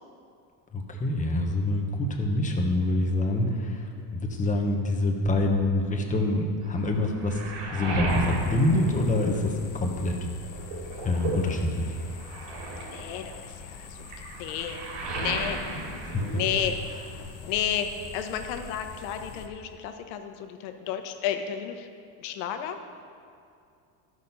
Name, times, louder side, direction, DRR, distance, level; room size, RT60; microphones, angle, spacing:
voice 1, 0.7-7.4 7.7-10.2 11.0-11.9 16.0-16.3, left 2 dB, 15° left, 2 dB, 1.0 m, -26 dB
Waves surf, 6.6-9.8 10.2-17.1 17.4-18.3, right 2 dB, 70° right, 2.7 m, -35 dB
sound 1, 8.1-19.5, left 6 dB, 55° left, 0.9 m, -45 dB
voice 2, 12.8-14.1 14.3-14.8 15.2-15.6 16.3-16.8 17.4-21.9 22.2-22.8, left 9 dB, 85° left, 7 dB, 1.1 m, -32 dB
13.0 x 6.4 x 5.5 m, 2.5 s
cardioid pair, 155°, 49 cm